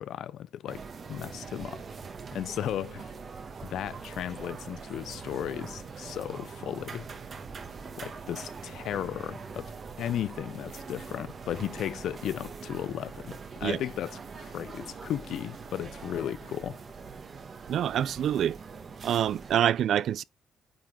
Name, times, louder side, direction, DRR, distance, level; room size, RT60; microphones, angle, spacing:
voice 1, 0.0-1.8 2.3-3.1 3.6-7.1 8.0-9.7 10.0-13.3 13.6-16.8, left 11 dB, 75° left, 0.4 m, -35 dB
sound 1, 0.7-19.6, right 5 dB, 45° right, 1.2 m, -43 dB
voice 2, 17.7-18.6 19.0-20.2, right 10 dB, 70° right, 0.3 m, -26 dB
9.1 x 3.6 x 3.9 m
cardioid pair, 90°, 0 cm